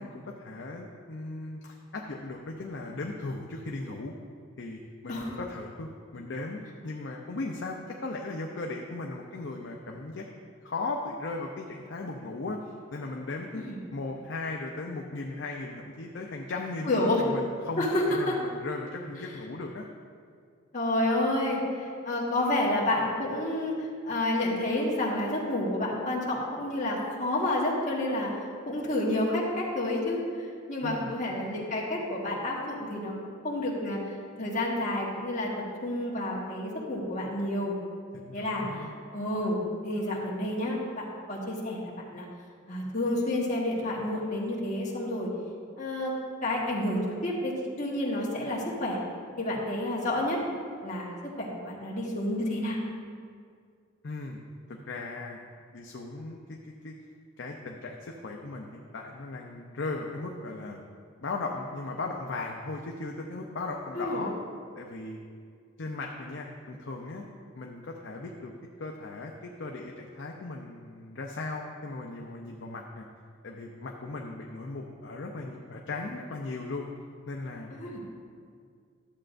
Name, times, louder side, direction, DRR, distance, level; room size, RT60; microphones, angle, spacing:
voice 1, 0.0-4.1 4.6-10.3 10.6-13.6 13.9-19.9 30.8-31.1 38.1-38.9 54.0-54.4 54.7-55.4 55.7-56.9 57.4-60.8 61.2-64.3 64.8-65.2 65.8-67.2 67.5-68.5 68.8-73.1 73.4-76.9 77.3-77.7, left 3 dB, 60° left, 0 dB, 0.5 m, -37 dB
voice 2, 5.1-5.4 13.5-13.8 16.9-17.2 17.8-18.3 20.7-28.3 28.6-33.1 33.4-34.0 34.4-35.5 35.8-37.7 38.3-42.3 42.7-45.3 45.8-46.1 46.4-49.0 49.4-50.4 50.8-52.8 63.9-64.3 77.7-78.0, left 1 dB, 35° left, -4 dB, 1.4 m, -29 dB
12.0 x 7.6 x 2.5 m, 2.2 s
head